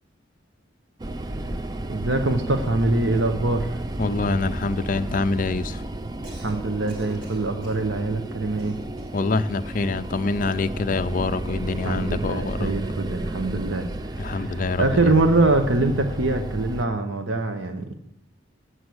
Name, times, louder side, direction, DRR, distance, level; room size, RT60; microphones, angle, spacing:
sound 1, 1.0-16.8, right 1 dB, 20° right, 0.4 m, -33 dB
voice 1, 1.9-3.8 6.4-8.8 11.8-17.9, right 2 dB, 70° right, 7 dB, 1.0 m, -24 dB
voice 2, 4.0-5.8 9.1-12.7 14.2-15.0, left 3 dB, 40° left, 11 dB, 0.5 m, -25 dB
Cough, 6.2-6.6 6.9-7.9 8.6-9.2 10.4-10.7, right 1 dB, 45° right, 3.0 m, -46 dB
8.4 x 7.9 x 7.9 m, 0.76 s
head